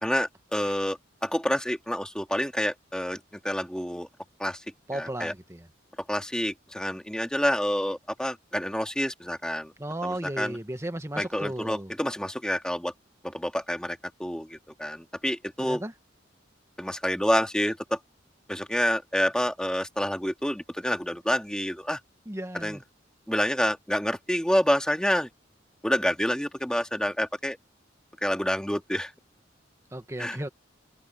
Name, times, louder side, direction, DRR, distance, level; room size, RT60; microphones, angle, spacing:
voice 1, 0.0-4.1 4.4-4.6 4.9-5.3 6.1-9.7 10.0-10.6 11.2-12.9 13.2-15.8 16.8-18.0 18.5-22.0 22.5-22.8 23.3-25.3 25.8-27.6 28.2-29.1 30.2-30.4, equal, 5° left, 2.3 m, -28 dB
voice 2, 4.9-5.7 9.8-11.9 15.6-15.9 22.2-22.8 29.9-30.5, right 1 dB, 15° right, 1.5 m, -35 dB
open air
head